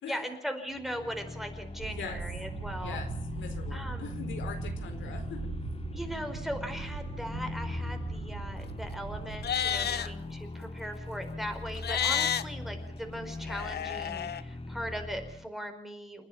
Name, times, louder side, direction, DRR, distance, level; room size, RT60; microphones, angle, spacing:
voice 1, 0.1-3.0 3.7-4.2 5.9-16.3, equal, ahead, 5 dB, 4.6 m, -39 dB
sound 1, 0.7-15.5, left 2 dB, 30° left, 1.7 m, -40 dB
sound 2, 1.8-9.5, right 5 dB, 70° right, 3.9 m, -40 dB
voice 2, 1.9-2.2 2.7-5.5 9.8-10.1, left 6 dB, 75° left, 6 dB, 4.2 m, -42 dB
Livestock farm animals working animals, 9.3-10.1 11.7-12.4 13.5-14.4, left 9 dB, 55° left, 1.2 m, -30 dB
29.0 x 10.0 x 10.0 m, 0.68 s
cardioid pair, 90°, 20 cm